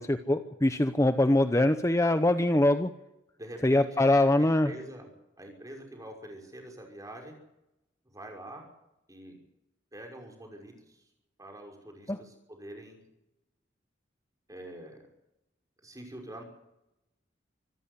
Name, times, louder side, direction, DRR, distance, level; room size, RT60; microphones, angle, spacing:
voice 1, 0.0-2.9 3.6-4.7 12.1-12.2, left 1 dB, 15° left, 9 dB, 0.8 m, -23 dB
voice 2, 3.4-5.1 5.4-7.4 8.0-8.7 9.1-9.4 9.9-11.0 11.4-13.0 14.5-15.1 15.8-16.4, right 1 dB, 20° right, 2 dB, 5.7 m, -45 dB
26.0 x 14.5 x 8.3 m, 0.90 s
head